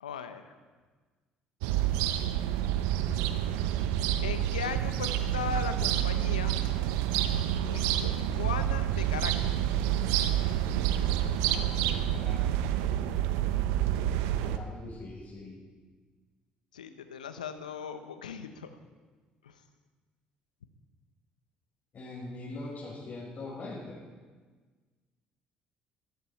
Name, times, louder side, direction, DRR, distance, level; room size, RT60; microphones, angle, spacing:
voice 1, 0.0-0.5 4.2-6.6 7.6-9.7 16.7-18.8 19.4-19.6, left 7 dB, 90° left, 9 dB, 1.0 m, -38 dB
sound 1, 1.6-14.6, right 11 dB, 75° right, 0.9 m, -28 dB
voice 2, 10.9-12.7 14.3-15.6 21.9-24.0, left 2 dB, 50° left, -7 dB, 6.5 m, -43 dB
20.0 x 14.5 x 4.5 m, 1.4 s
hypercardioid pair, 55°, 4 cm